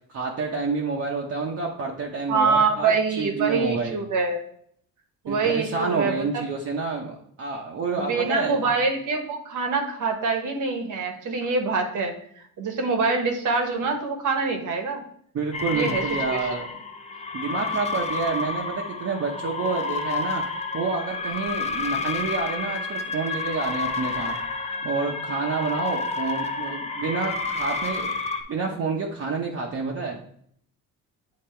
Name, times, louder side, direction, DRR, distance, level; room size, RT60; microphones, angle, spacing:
voice 1, 0.1-4.0 5.3-8.7 15.3-16.7 17.3-20.4 20.7-24.3 24.8-28.1 28.5-30.2, right 4 dB, 40° right, -1 dB, 0.9 m, -28 dB
voice 2, 2.3-4.4 5.2-6.4 8.0-15.0 15.7-16.5, right 4 dB, 60° right, 4 dB, 1.3 m, -25 dB
sound 1, 15.5-28.4, left 3 dB, 20° left, 0.6 m, -30 dB
8.6 x 2.9 x 4.4 m, 0.65 s
cardioid pair, 135°, 35 cm